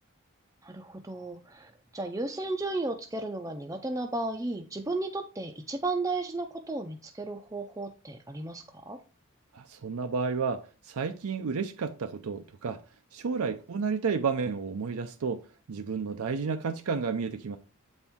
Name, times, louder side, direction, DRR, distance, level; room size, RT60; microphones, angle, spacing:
voice 1, 0.6-9.0, right 2 dB, 15° right, 0.4 m, -34 dB
voice 2, 9.5-12.8 13.1-17.6, right 5 dB, 75° right, 0.5 m, -31 dB
8.0 x 4.3 x 3.5 m
head